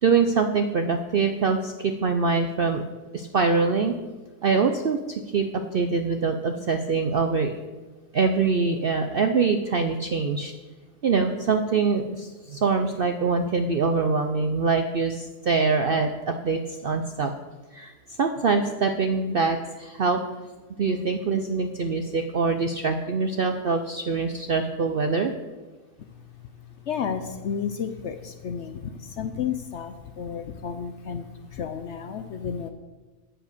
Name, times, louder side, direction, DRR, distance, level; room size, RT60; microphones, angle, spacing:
voice 1, 0.0-2.8 3.1-4.0 4.4-5.5 5.7-7.6 8.1-10.5 11.0-17.3 17.7-17.9 18.2-20.2 20.8-25.3, right 4 dB, 60° right, 5 dB, 0.6 m, -24 dB
voice 2, 26.8-31.2 31.5-32.7, left 7 dB, 60° left, 7 dB, 0.8 m, -32 dB
8.8 x 7.8 x 6.6 m, 1.2 s
omnidirectional pair, 1.6 m